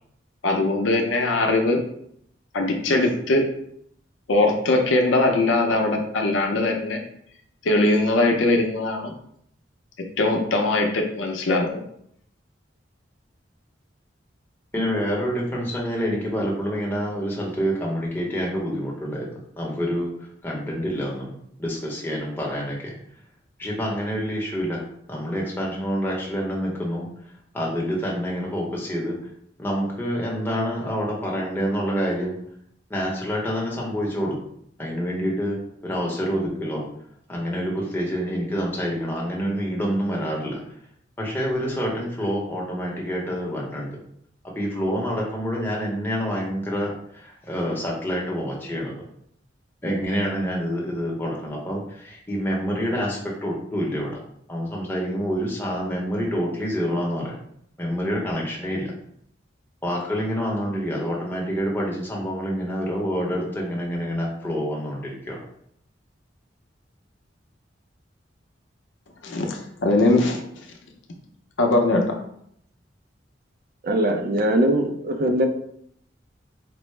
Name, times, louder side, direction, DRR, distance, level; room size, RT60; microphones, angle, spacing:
voice 1, 0.4-1.8 2.5-3.5 4.3-7.0 7.6-9.1 10.2-11.8 69.2-70.4 71.6-72.2, left 2 dB, 85° left, 3 dB, 0.6 m, -21 dB
voice 2, 14.7-20.1 20.4-21.3 21.6-23.0 23.6-24.8 25.1-27.0 27.5-29.2 29.6-32.3 32.9-34.4 34.8-35.6 35.8-36.9 37.3-40.6 41.2-43.9 44.4-49.0 49.8-54.2 54.5-57.3 57.8-58.9 59.8-65.4, equal, 10° left, -3 dB, 0.8 m, -27 dB
voice 3, 73.8-75.4, right 1 dB, 50° right, 5 dB, 0.5 m, -21 dB
4.4 x 2.0 x 3.1 m, 0.69 s
head